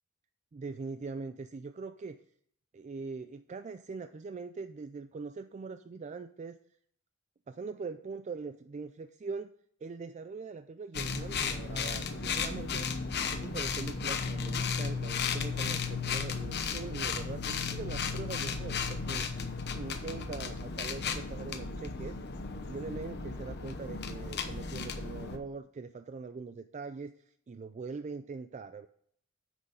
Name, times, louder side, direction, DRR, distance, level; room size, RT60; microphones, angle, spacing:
voice 1, 0.5-2.2 2.7-6.6 7.5-9.5 9.8-12.9 13.2-19.3 19.7-22.2 22.7-27.1 27.5-28.9, right 4 dB, 30° right, 11 dB, 0.3 m, -42 dB
sound 1, 10.9-25.4, left 5 dB, 50° left, 0.9 m, -35 dB
9.4 x 6.3 x 5.2 m, 0.67 s
head